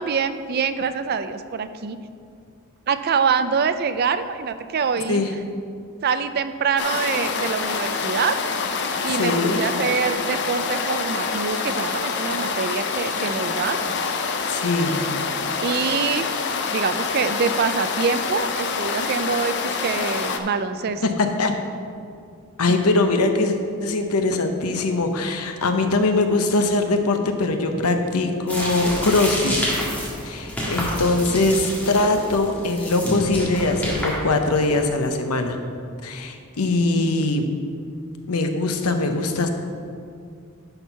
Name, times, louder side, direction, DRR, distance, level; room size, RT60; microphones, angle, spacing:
voice 1, 0.0-2.0 2.9-5.2 6.0-8.4 9.0-13.8 15.6-16.3 16.7-21.0, right 6 dB, 45° right, 11 dB, 0.4 m, -25 dB
voice 2, 4.9-5.3 9.1-9.6 14.5-15.1 21.0-21.5 22.6-29.8 30.2-35.6 36.0-37.5 38.3-39.5, left 2 dB, 85° left, 6 dB, 0.8 m, -22 dB
sound 1, 6.8-20.4, left 4 dB, 50° left, 0.6 m, -26 dB
sound 2, 28.5-34.9, equal, 5° left, 1.6 m, -29 dB
10.5 x 4.5 x 5.6 m, 2.3 s
head